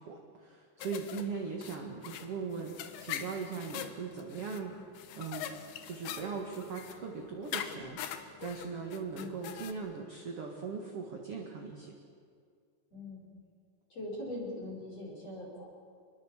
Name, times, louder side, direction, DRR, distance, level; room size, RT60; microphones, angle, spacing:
voice 1, 0.0-4.7 5.2-5.5 5.8-12.0, right 5 dB, 45° right, 0 dB, 2.0 m, -40 dB
sound 1, 0.8-9.7, left 10 dB, 70° left, 2.9 m, -43 dB
voice 2, 9.1-9.4 12.9-13.2 13.9-15.7, left 1 dB, 35° left, -4 dB, 6.0 m, -42 dB
26.0 x 22.0 x 7.3 m, 2.2 s
omnidirectional pair, 5.1 m